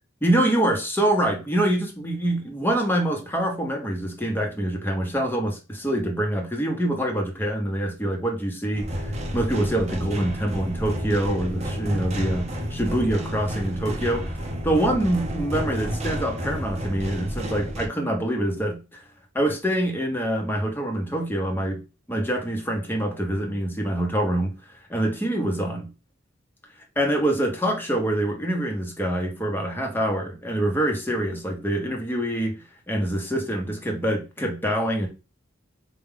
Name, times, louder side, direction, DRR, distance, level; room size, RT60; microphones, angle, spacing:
voice 1, 0.2-14.4 14.6-19.0 19.3-21.8 22.1-24.5 24.9-25.9 27.0-32.5 32.9-35.1, right 1 dB, 10° left, 0.9 m, -25 dB
sound 1, 8.7-17.9, equal, 35° right, 0.7 m, -30 dB
4.6 x 2.3 x 3.5 m
head